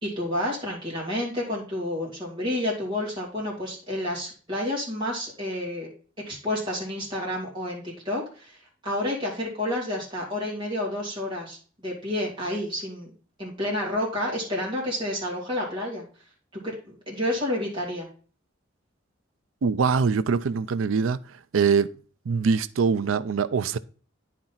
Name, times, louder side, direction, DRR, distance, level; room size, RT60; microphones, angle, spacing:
voice 1, 0.0-5.9 6.3-13.1 13.4-16.0 16.6-18.1, left 1 dB, 25° right, 2.7 m, -30 dB
voice 2, 19.6-21.2 21.5-21.9 22.3-23.8, right 5 dB, 80° right, 0.4 m, -23 dB
9.7 x 4.4 x 3.9 m
head